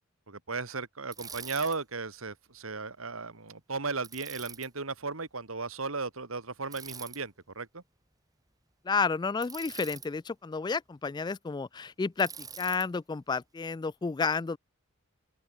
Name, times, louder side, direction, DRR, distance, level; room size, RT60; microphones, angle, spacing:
voice 1, 0.3-7.8, right 4 dB, 70° right, 2.1 m, -36 dB
Bicycle, 1.1-1.8 4.0-4.7 6.7-7.2 9.4-10.1 12.2-12.9, right 6 dB, 15° right, 3.6 m, -44 dB
voice 2, 8.8-14.6, left 4 dB, 20° left, 0.3 m, -31 dB
open air
head